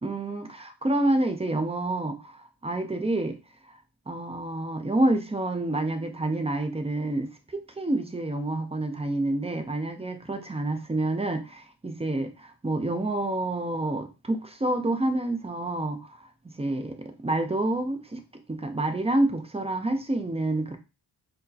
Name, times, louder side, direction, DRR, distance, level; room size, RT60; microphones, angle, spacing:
voice 1, 0.0-3.4 3.7-3.8 4.1-16.3 16.6-18.2 18.5-20.8, right 2 dB, 15° right, 0.4 m, -28 dB
4.4 x 2.1 x 2.6 m
wide cardioid pair, 105°, 43 cm